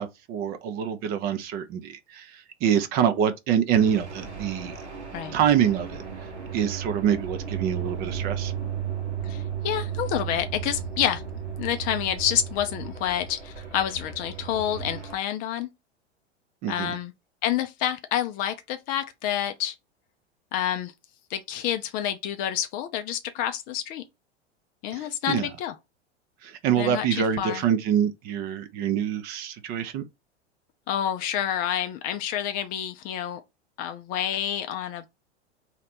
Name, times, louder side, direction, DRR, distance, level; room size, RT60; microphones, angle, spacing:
voice 1, 0.0-4.8 5.3-6.0 6.5-8.5 16.6-16.9 24.9-25.5 26.4-30.0, right 9 dB, 30° right, 0.5 m, -25 dB
sound 1, 3.7-15.2, right 7 dB, 75° right, 1.4 m, -34 dB
voice 2, 9.2-11.2 11.6-15.7 16.7-17.1 17.4-19.7 20.5-20.9 21.3-24.0 24.8-25.7 26.8-27.6 30.9-33.4 33.8-35.1, left 10 dB, 25° left, 0.4 m, -28 dB
4.1 x 2.9 x 4.1 m
figure-of-eight pair, 90°, 34 cm